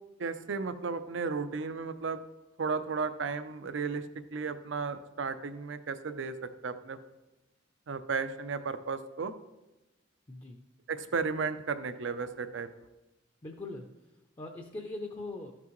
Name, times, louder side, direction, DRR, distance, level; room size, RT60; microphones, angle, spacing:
voice 1, 0.2-2.2 2.6-4.1 4.3-7.0 7.9-9.3 10.9-12.7, right 5 dB, 75° right, 11 dB, 0.6 m, -34 dB
voice 2, 10.3-10.6 13.4-15.5, left 2 dB, 25° left, 3 dB, 0.5 m, -41 dB
13.0 x 6.0 x 3.1 m, 1.0 s
head